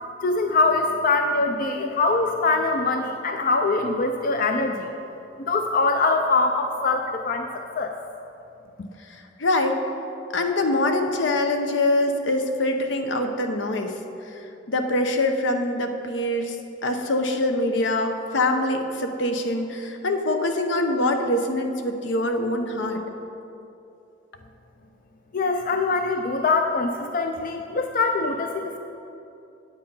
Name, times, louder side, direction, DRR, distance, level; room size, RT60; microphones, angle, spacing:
voice 1, 0.2-4.9 5.4-7.5 7.8-7.9 8.8-8.9 25.3-28.8, left 3 dB, 50° left, 5 dB, 0.5 m, -23 dB
voice 2, 9.1-9.8 10.3-13.9 14.2-14.3 14.7-16.6 16.8-23.0, left 1 dB, 80° left, 5 dB, 0.8 m, -24 dB
9.0 x 7.8 x 5.5 m, 2.8 s
head